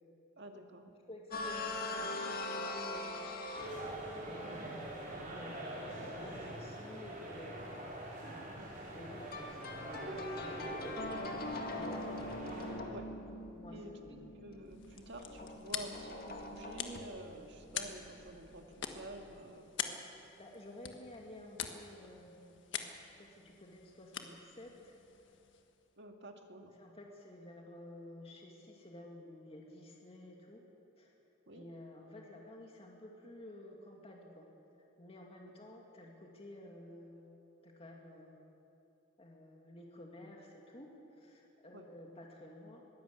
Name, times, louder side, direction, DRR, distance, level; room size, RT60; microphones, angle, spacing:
voice 1, 0.4-1.0 4.4-4.5 8.6-8.7 12.9-13.1 13.7-19.7 26.0-26.8 31.5-31.6 41.7-41.8, right 1 dB, 65° right, 4 dB, 2.1 m, -50 dB
voice 2, 1.1-3.2 4.2-7.8 8.9-12.5 13.5-14.4 20.4-22.6 23.0-25.0 26.8-30.6 31.0-31.1 31.5-34.5 35.0-37.3 37.6-38.4 39.2-43.0, left 1 dB, 30° left, 0 dB, 2.2 m, -52 dB
sound 1, 1.3-4.0 9.3-19.4, left 2 dB, 50° left, 1.9 m, -42 dB
sound 2, 3.5-12.7, right 1 dB, 45° right, 5.6 m, -44 dB
sound 3, 14.6-25.9, left 7 dB, 70° left, 1.5 m, -46 dB
21.5 x 16.5 x 8.2 m, 2.8 s
head